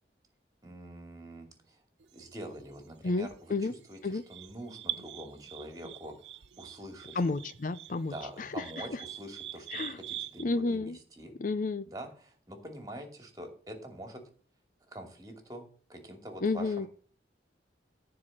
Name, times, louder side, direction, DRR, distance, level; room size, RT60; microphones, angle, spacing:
voice 1, 0.6-1.5 2.1-3.6 3.9-6.1 6.6-7.3 8.1-11.3 11.8-14.2 14.9-16.9, right 1 dB, 20° right, 4 dB, 2.6 m, -45 dB
sound 1, 2.0-10.4, right 12 dB, 80° right, 0.6 m, -44 dB
voice 2, 3.0-3.7 4.0-4.2 7.1-8.6 8.9-9.0 9.7-10.0 10.4-11.0 11.4-11.8 16.4-16.9, left 3 dB, 45° left, 14 dB, 0.5 m, -31 dB
14.0 x 4.8 x 7.4 m, 0.43 s
head